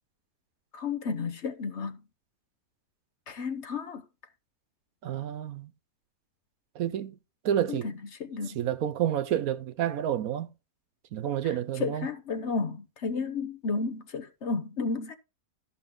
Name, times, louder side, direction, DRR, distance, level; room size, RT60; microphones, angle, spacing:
voice 1, 0.7-2.0 3.3-4.0 7.7-7.9 8.2-8.6 11.8-15.1, left 4 dB, 50° left, 1.1 m, -32 dB
voice 2, 5.0-5.7 6.7-7.1 7.4-7.9 8.5-10.5 11.1-12.1, right 10 dB, 70° right, 1.1 m, -29 dB
13.0 x 6.1 x 3.7 m
omnidirectional pair, 1.6 m